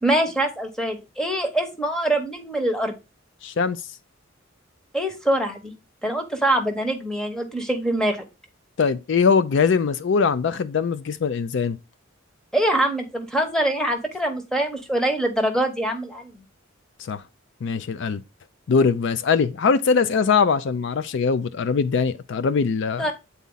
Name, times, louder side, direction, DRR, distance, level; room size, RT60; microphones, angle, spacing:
voice 1, 0.0-3.0 4.9-5.7 6.0-8.2 12.5-16.4 23.0-23.1, right 1 dB, 5° left, 1.1 m, -24 dB
voice 2, 3.4-3.8 8.8-11.8 17.0-17.2 17.6-18.2 18.7-23.1, left 5 dB, 60° left, 0.4 m, -21 dB
8.3 x 4.1 x 3.8 m
head